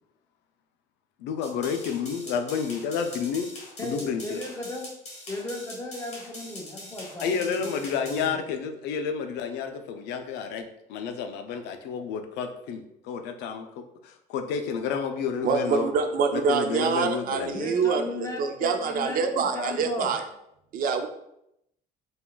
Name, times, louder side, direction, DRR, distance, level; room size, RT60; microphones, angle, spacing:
voice 1, 1.2-3.5 3.8-4.4 7.2-15.9 16.3-17.7, left 6 dB, 85° left, 7 dB, 0.4 m, -30 dB
sound 1, 1.4-8.3, left 1 dB, 40° left, 1.2 m, -43 dB
voice 2, 3.8-4.9 5.3-8.4 17.5-20.1, left 2 dB, 20° left, 1 dB, 0.6 m, -36 dB
voice 3, 15.4-20.2 20.7-21.1, right 5 dB, 60° right, 6 dB, 0.4 m, -26 dB
3.6 x 2.3 x 2.2 m, 0.79 s
cardioid pair, 110°, 17 cm